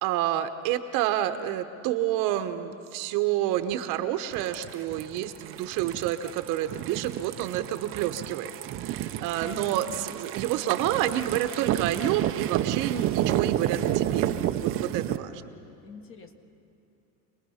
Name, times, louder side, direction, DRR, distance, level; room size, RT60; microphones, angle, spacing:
voice 1, 0.0-8.5 8.8-14.3 14.6-15.4, right 12 dB, 50° right, 9 dB, 1.1 m, -29 dB
sound 1, 4.3-15.2, right 12 dB, 35° right, 0.7 m, -30 dB
voice 2, 9.4-10.0 15.8-16.3, left 5 dB, 30° left, 6 dB, 1.6 m, -48 dB
27.5 x 19.5 x 5.7 m, 2.7 s
supercardioid pair, 140°, 39 cm